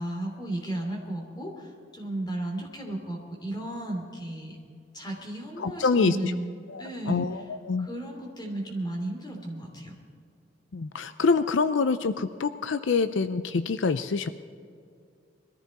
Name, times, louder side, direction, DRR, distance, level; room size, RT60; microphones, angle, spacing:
voice 1, 0.0-4.6 4.9-7.4 7.8-9.9, right 1 dB, 20° left, 1 dB, 3.0 m, -34 dB
voice 2, 5.6-6.3 6.7-7.9 10.7-14.3, left 4 dB, 80° left, 12 dB, 0.5 m, -26 dB
22.0 x 14.5 x 4.2 m, 2.2 s
head